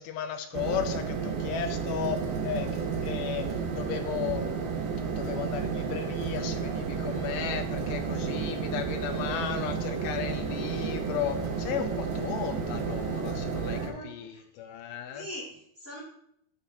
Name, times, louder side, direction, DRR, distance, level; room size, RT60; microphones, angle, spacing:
voice 1, 0.0-4.4 5.2-15.3, left 9 dB, 80° left, 7 dB, 2.5 m, -35 dB
sound 1, 0.5-13.9, right 5 dB, 80° right, 3.1 m, -32 dB
voice 2, 13.6-14.4 15.1-16.0, equal, 25° right, -6 dB, 2.1 m, -42 dB
11.0 x 7.0 x 2.8 m, 0.72 s
omnidirectional pair, 4.4 m